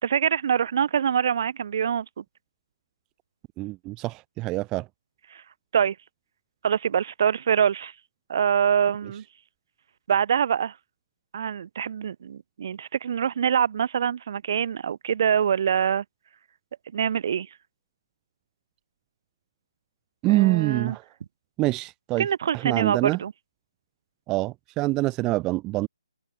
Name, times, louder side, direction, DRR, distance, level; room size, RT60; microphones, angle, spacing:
voice 1, 0.0-2.2 5.3-5.4 5.7-6.0 6.6-7.9 8.3-9.2 10.1-10.7 11.3-16.0 16.9-17.5 20.3-21.0 22.2-23.3, right 8 dB, 45° right, 2.4 m, -24 dB
voice 2, 3.6-4.9 20.2-21.0 21.6-22.3 22.5-23.2 24.3-25.9, right 20 dB, 15° right, 0.4 m, -25 dB
figure-of-eight pair, 140°, 3 cm